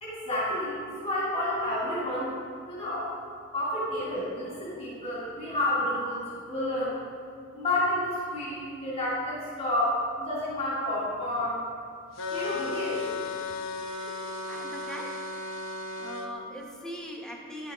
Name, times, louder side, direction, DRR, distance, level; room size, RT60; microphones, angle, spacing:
voice 1, 0.0-2.3 2.7-3.1 3.5-6.9 7.5-11.6 12.3-13.0, left 1 dB, 30° left, -9 dB, 2.7 m, -30 dB
sound 1, 12.2-16.3, left 3 dB, 80° left, 0.8 m, -35 dB
voice 2, 13.9-15.2 16.0-17.7, equal, 5° left, -1 dB, 1.1 m, -41 dB
11.0 x 6.4 x 4.9 m, 2.3 s
head